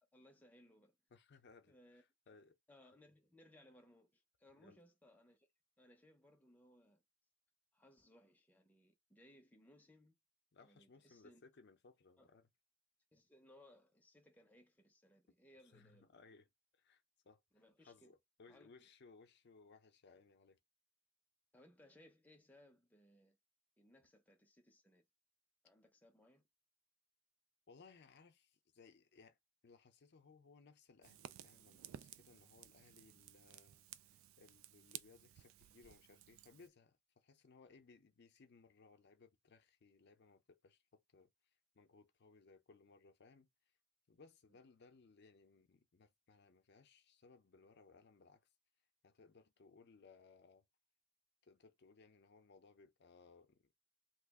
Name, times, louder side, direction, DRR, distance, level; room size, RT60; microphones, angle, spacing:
voice 1, 0.1-1.0 1.7-2.0 2.7-5.5 5.8-7.0 7.7-10.1 10.6-11.4 12.2-12.3 13.1-16.1 17.5-18.1 18.5-18.8 21.5-23.4 23.8-25.0 25.6-26.5 44.5-44.6, left 1 dB, 10° left, 0.6 m, -66 dB
voice 2, 1.1-2.6 4.6-4.8 10.5-12.5 15.6-16.5 16.7-17.4 17.8-20.6 27.7-29.4 29.6-43.5 44.1-48.5 49.0-50.6 51.4-53.6, left 4 dB, 55° left, 0.5 m, -64 dB
Fire, 31.0-36.7, right 11 dB, 85° right, 0.3 m, -56 dB
3.0 x 2.4 x 3.5 m
head